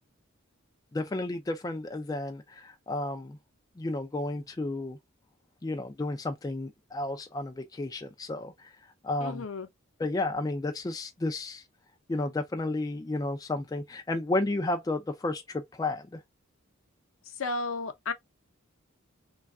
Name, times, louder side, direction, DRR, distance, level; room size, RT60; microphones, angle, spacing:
voice 1, 0.9-3.4 3.8-5.0 5.6-8.8 9.0-9.4 10.0-11.6 12.1-16.2, left 2 dB, 20° left, 0.3 m, -32 dB
voice 2, 9.2-9.7 17.4-18.1, left 3 dB, 75° left, 0.6 m, -33 dB
3.2 x 2.3 x 2.4 m
head